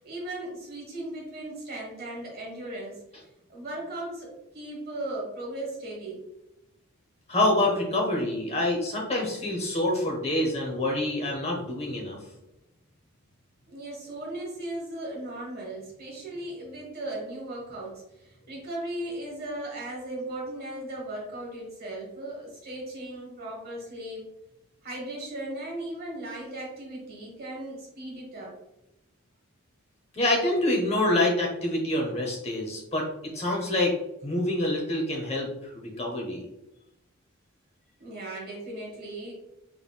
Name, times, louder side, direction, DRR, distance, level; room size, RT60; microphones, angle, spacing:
voice 1, 0.0-3.0 3.5-6.2 13.7-24.3 24.8-28.5 38.0-39.3, right 1 dB, 45° right, -2 dB, 1.3 m, -37 dB
voice 2, 7.3-12.2 30.1-33.9 34.2-36.5, left 1 dB, 30° left, -1 dB, 0.8 m, -26 dB
3.6 x 3.3 x 2.3 m, 0.89 s
head